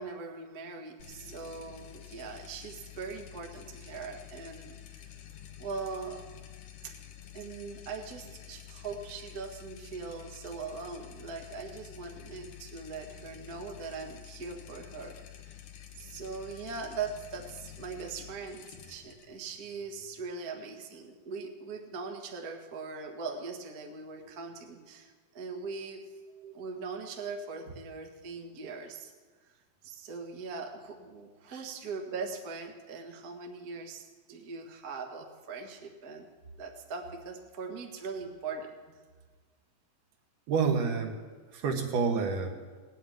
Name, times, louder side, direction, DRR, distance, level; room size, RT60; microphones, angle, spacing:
voice 1, 0.0-5.1 5.6-6.2 6.8-6.9 7.3-15.5 15.9-26.0 26.5-29.1 29.5-29.6 29.8-36.3 36.6-38.7, right 4 dB, 40° right, 2 dB, 1.3 m, -41 dB
sound 1, 1.0-20.3, left 10 dB, 70° left, 2.6 m, -49 dB
voice 2, 40.5-41.2 41.5-42.5, right 5 dB, 65° right, 3 dB, 2.9 m, -29 dB
18.5 x 8.1 x 9.2 m, 1.4 s
omnidirectional pair, 4.0 m